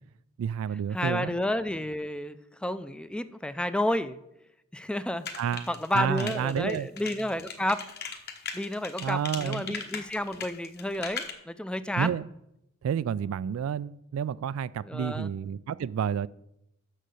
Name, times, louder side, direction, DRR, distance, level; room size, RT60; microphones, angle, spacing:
voice 1, 0.4-1.4 5.4-5.7 5.9-6.9 9.0-9.8 12.0-12.3 12.8-16.3, right 8 dB, 90° right, 0.3 m, -30 dB
voice 2, 0.9-4.2 4.7-5.3 5.7-7.8 8.5-12.1 14.8-15.3, left 1 dB, 5° left, 0.4 m, -31 dB
sound 1, 5.2-11.3, left 6 dB, 50° left, 1.3 m, -38 dB
6.6 x 6.5 x 7.7 m
head